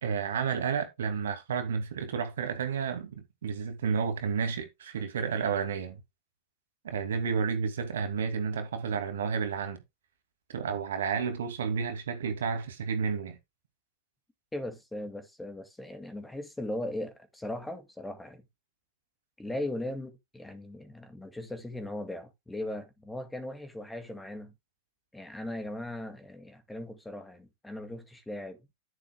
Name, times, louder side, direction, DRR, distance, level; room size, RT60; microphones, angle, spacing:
voice 1, 0.0-6.0 6.8-9.8 10.5-13.4, right 6 dB, 60° right, 2.4 m, -31 dB
voice 2, 14.5-18.4 19.4-24.5 25.1-28.7, left 1 dB, 5° left, 2.1 m, -38 dB
11.0 x 10.0 x 2.3 m
figure-of-eight pair, 90°, 0 cm